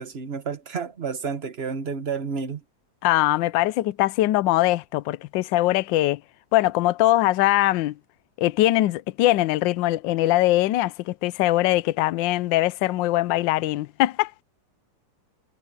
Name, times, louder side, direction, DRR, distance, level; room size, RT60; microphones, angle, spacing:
voice 1, 0.0-2.6, right 5 dB, 35° right, 1.3 m, -30 dB
voice 2, 3.0-6.2 6.5-7.9 8.4-14.3, left 16 dB, 80° left, 1.3 m, -22 dB
omnidirectional pair, 2.1 m